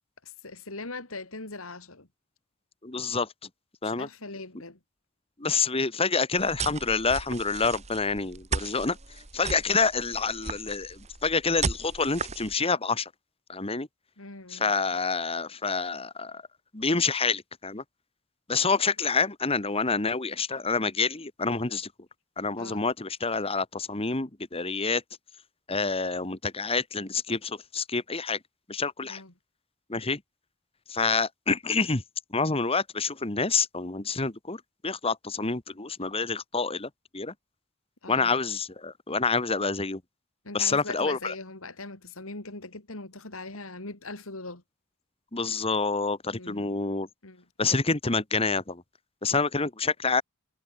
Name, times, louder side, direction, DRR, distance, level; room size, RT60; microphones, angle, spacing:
voice 1, 0.2-2.1 3.8-4.8 14.2-14.7 22.6-22.9 29.0-29.3 38.0-38.3 40.4-44.6 46.3-46.8 47.2-47.4, left 3 dB, 90° left, 4.1 m, -41 dB
voice 2, 2.8-3.3 3.8-4.1 5.4-9.0 9.3-13.1 13.5-13.9 14.5-16.4 16.7-17.8 18.5-21.9 22.4-25.0 25.7-28.4 28.7-29.2 29.9-30.2 30.9-32.0 32.3-37.3 38.1-40.0 40.5-41.3 45.3-47.1 47.6-48.8 49.2-50.2, left 4 dB, 30° left, 1.6 m, -27 dB
sound 1, 6.4-12.5, right 4 dB, 35° right, 1.8 m, -36 dB
head